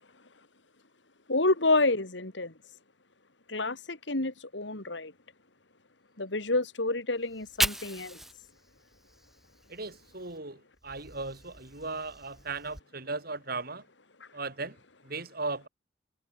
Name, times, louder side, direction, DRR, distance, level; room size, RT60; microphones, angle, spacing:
voice 1, 1.3-2.5 3.5-5.1 6.2-8.2, left 2 dB, 75° left, 3.0 m, -28 dB
Fire, 7.2-10.4 10.7-12.8, equal, ahead, 5.0 m, -37 dB
voice 2, 9.7-13.8 14.3-14.8 15.0-15.7, right 3 dB, 55° right, 6.9 m, -37 dB
head